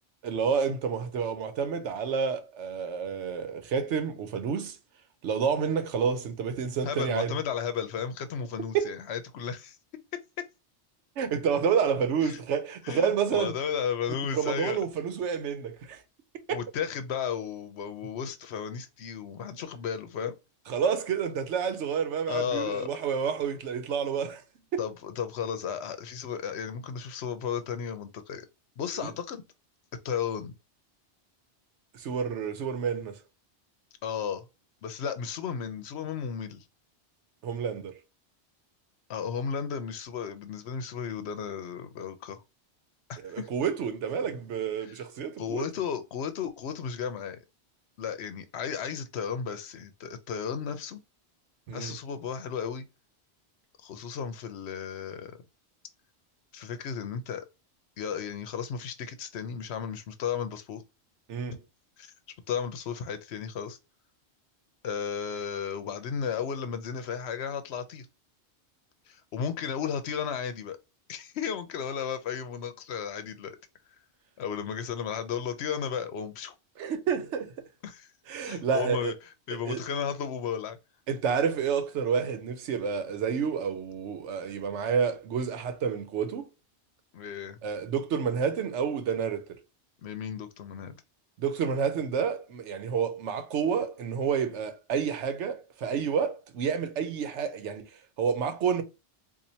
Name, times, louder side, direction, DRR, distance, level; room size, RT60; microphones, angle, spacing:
voice 1, 0.2-4.8 5.2-7.3 8.7-9.0 11.2-13.5 14.3-16.0 16.5-16.6 20.7-24.4 24.7-24.8 28.9-29.1 31.9-33.2 37.4-38.0 43.2-45.7 51.7-52.0 61.3-61.6 76.8-77.5 78.3-79.1 79.5-79.8 81.1-86.5 87.6-89.6 91.4-97.9 98.2-98.8, right 6 dB, 90° right, 1.0 m, -29 dB
voice 2, 6.8-9.8 12.2-12.4 12.8-14.8 16.5-20.3 22.3-22.9 24.8-28.5 28.8-29.4 30.0-30.5 34.0-34.4 34.8-36.6 39.1-42.4 43.1-43.5 45.4-47.4 48.0-51.0 51.7-52.8 53.8-55.3 56.5-57.5 58.0-60.8 61.5-61.6 62.0-62.1 62.5-63.8 64.8-68.1 69.1-70.8 71.1-73.6 74.4-76.5 77.8-78.1 78.4-79.1 79.5-80.8 87.1-87.6 90.0-91.0, left 7 dB, 70° left, 0.9 m, -34 dB
4.3 x 2.5 x 2.7 m
omnidirectional pair, 1.2 m